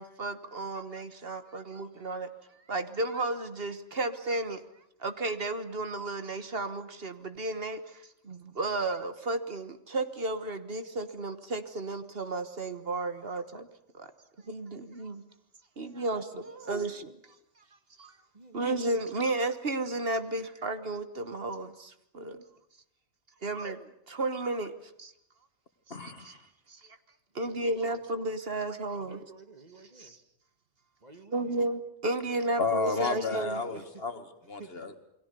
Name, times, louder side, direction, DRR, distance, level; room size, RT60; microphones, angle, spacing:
voice 1, 0.0-2.3 2.7-4.6 5.0-13.7 13.9-14.1 14.4-15.2 15.8-17.1 18.0-18.1 18.5-22.4 23.4-24.7 25.0-25.1 26.0-26.4 26.7-27.0 27.3-29.2 30.0-30.2 31.3-33.6, right 2 dB, 55° right, 10 dB, 1.5 m, -33 dB
voice 2, 16.7-17.2 18.3-18.7 27.4-27.8 29.0-30.2 31.0-31.6 33.7-34.0 34.6-34.7, right 3 dB, 35° right, 8 dB, 1.8 m, -52 dB
voice 3, 25.9-26.3 32.6-35.0, left 3 dB, 55° left, 9 dB, 2.0 m, -32 dB
28.5 x 22.0 x 6.9 m, 0.78 s
omnidirectional pair, 1.2 m